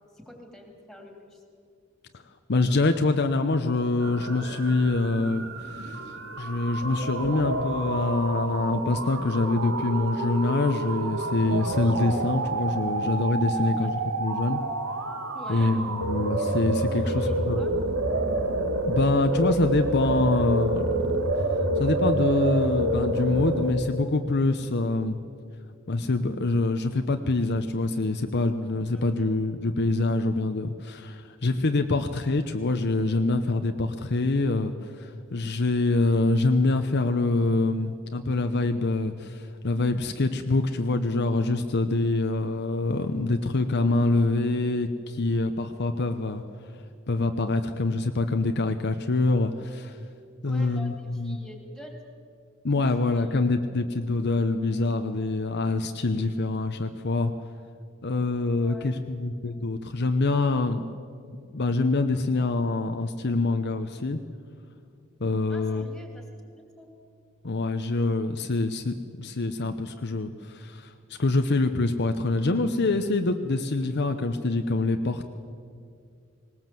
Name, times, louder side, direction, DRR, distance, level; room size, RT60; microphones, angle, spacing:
voice 1, 0.2-1.4 13.6-14.2 15.3-15.7 17.0-17.8 28.9-29.3 50.4-52.0 53.0-53.4 58.5-59.0 65.5-66.9, left 1 dB, ahead, 2 dB, 3.0 m, -46 dB
voice 2, 2.5-6.0 6.4-14.6 15.5-17.7 18.9-20.9 21.8-25.2 25.9-46.4 47.1-50.0 50.4-51.4 52.6-57.3 58.0-60.8 61.5-64.2 65.2-65.9 67.4-75.2, left 2 dB, 55° left, 7 dB, 0.8 m, -25 dB
sound 1, 4.0-23.7, right 2 dB, 75° right, 1.9 m, -28 dB
19.0 x 19.0 x 7.7 m, 2.3 s
head